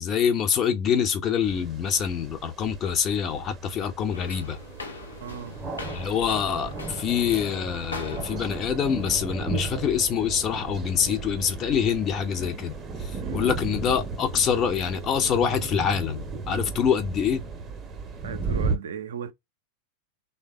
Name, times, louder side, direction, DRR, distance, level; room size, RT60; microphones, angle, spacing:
voice 1, 0.0-4.6 5.9-17.4, left 8 dB, 30° left, 0.6 m, -25 dB
sound 1, 1.4-18.8, right 3 dB, 20° right, 0.7 m, -35 dB
sound 2, 4.1-9.2, left 3 dB, 75° left, 0.6 m, -42 dB
voice 2, 5.2-5.6 13.2-13.6 18.2-19.3, right 8 dB, 60° right, 0.5 m, -36 dB
3.2 x 2.2 x 3.6 m
figure-of-eight pair, 90°, 0 cm